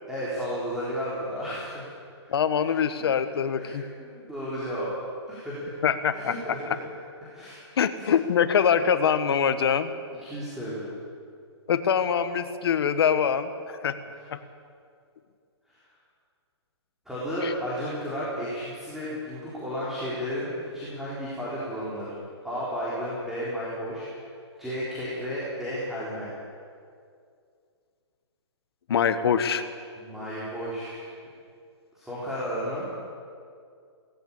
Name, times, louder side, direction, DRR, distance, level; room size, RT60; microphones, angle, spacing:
voice 1, 0.1-1.9 2.2-2.3 2.6-2.7 3.0-3.1 3.6-4.9 5.3-5.8 6.1-6.8 7.3-8.1 10.2-10.9 15.7-15.8 17.1-22.1 22.4-24.3 24.6-26.3 30.0-31.1 31.9-32.9, equal, ahead, -10 dB, 4.1 m, -33 dB
voice 2, 2.3-3.9 5.8-6.3 7.8-9.9 11.7-14.0 14.3-14.4 17.4-17.5 28.9-29.6, left 7 dB, 60° left, 11 dB, 1.5 m, -24 dB
18.5 x 16.5 x 8.6 m, 2.3 s
hypercardioid pair, 160°, 15 cm